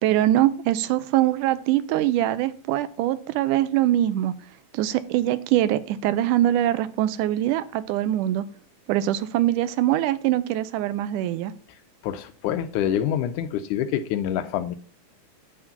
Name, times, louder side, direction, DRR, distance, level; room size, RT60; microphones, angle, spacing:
voice 1, 0.0-4.3 4.7-8.5 8.9-11.5, right 13 dB, 80° right, 14 dB, 2.1 m, -23 dB
voice 2, 12.0-14.8, left 10 dB, 80° left, 10 dB, 2.0 m, -26 dB
9.7 x 3.7 x 6.9 m, 0.42 s
omnidirectional pair, 3.6 m